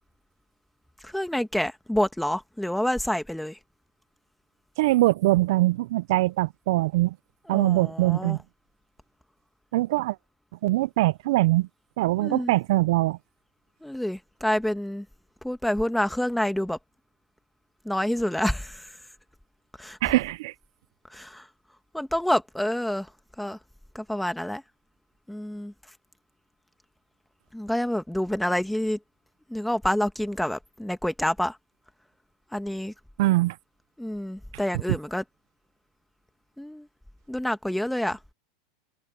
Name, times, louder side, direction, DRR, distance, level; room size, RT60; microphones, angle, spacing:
voice 1, 1.0-3.6 7.5-8.4 12.2-12.5 13.8-15.0 15.4-16.8 17.8-18.9 19.8-20.0 21.1-21.5 21.9-23.1 23.4-23.6 23.9-24.6 25.3-25.7 27.5-29.0 29.5-31.6 32.5-32.9 34.0-35.2 36.6-36.9 37.3-38.2, left 1 dB, ahead, 1.5 m, -28 dB
voice 2, 4.8-7.1 7.5-8.4 9.7-10.2 10.6-11.7 12.0-13.2 20.0-20.5 33.2-33.5, right 18 dB, 70° right, 0.4 m, -22 dB
open air
supercardioid pair, 130°, 2 cm